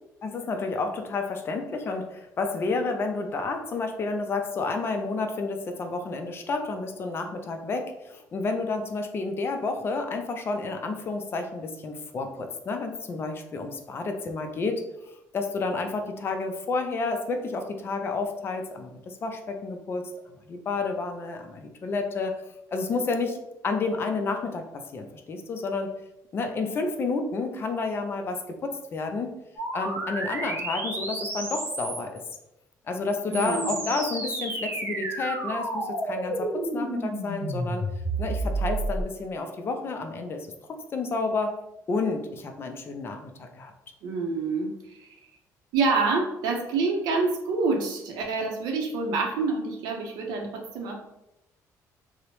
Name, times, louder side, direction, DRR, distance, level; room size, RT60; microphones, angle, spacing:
voice 1, 0.2-14.8 15.3-20.1 20.4-22.4 22.7-25.9 26.3-29.3 29.7-32.2 32.9-37.9 38.2-41.6 41.9-43.7, left 3 dB, 35° left, 5 dB, 0.4 m, -30 dB
sound 1, 29.6-32.2 33.1-39.0, right 2 dB, 30° right, 0.7 m, -31 dB
voice 2, 33.3-33.9 44.0-45.1 45.7-50.9, right 4 dB, 90° right, 2 dB, 0.6 m, -27 dB
2.8 x 2.0 x 2.9 m, 0.87 s
cardioid pair, 130°, 7 cm